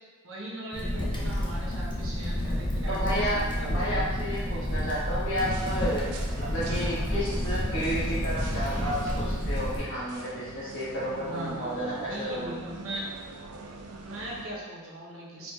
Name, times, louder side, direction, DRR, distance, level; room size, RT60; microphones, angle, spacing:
voice 1, 0.2-4.1 11.2-13.1 13.9-15.5, right 1 dB, 65° right, -4 dB, 0.7 m, -39 dB
Crackle, 0.7-9.8, left 1 dB, 20° left, 0.5 m, -30 dB
voice 2, 2.9-12.6, equal, 55° left, -9 dB, 1.3 m, -32 dB
sound 1, 5.4-14.5, right 3 dB, 90° right, 0.4 m, -42 dB
4.2 x 2.4 x 2.2 m, 1.3 s
head